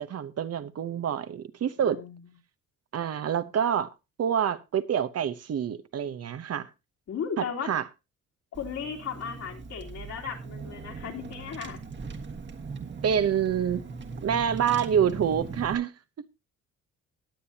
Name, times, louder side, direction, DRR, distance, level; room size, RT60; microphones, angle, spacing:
voice 1, 0.0-2.0 2.9-3.9 4.2-6.7 7.4-7.9 12.8-13.8 14.2-15.9, right 8 dB, 55° right, 1.0 m, -27 dB
voice 2, 1.8-2.1 7.1-7.7 8.5-11.8, left 7 dB, 60° left, 3.2 m, -36 dB
Car / Engine, 8.5-15.7, right 4 dB, 40° right, 1.6 m, -39 dB
19.0 x 7.8 x 2.8 m
cardioid pair, 90°, 30 cm